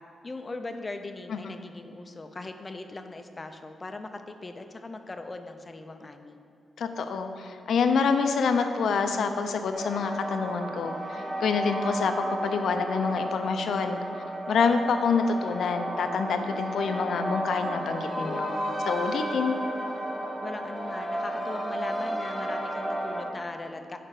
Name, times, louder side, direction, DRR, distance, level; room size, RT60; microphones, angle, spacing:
voice 1, 0.2-6.4 20.4-24.0, left 2 dB, 25° left, 7 dB, 0.5 m, -40 dB
voice 2, 6.8-14.0 14.5-18.5 18.8-19.6, left 5 dB, 75° left, 7 dB, 0.6 m, -27 dB
sound 1, 9.7-23.2, right 1 dB, ahead, 1.7 m, -33 dB
8.8 x 5.0 x 4.8 m, 2.5 s
cardioid pair, 110°, 0 cm